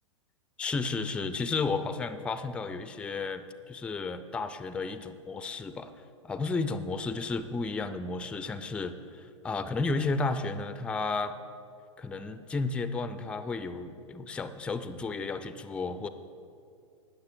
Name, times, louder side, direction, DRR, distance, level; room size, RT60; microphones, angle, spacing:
voice 1, 0.6-5.9 6.2-11.4 12.0-16.1, left 3 dB, 5° left, 11 dB, 0.3 m, -33 dB
19.0 x 6.6 x 4.8 m, 2.4 s
figure-of-eight pair, 100°, 17 cm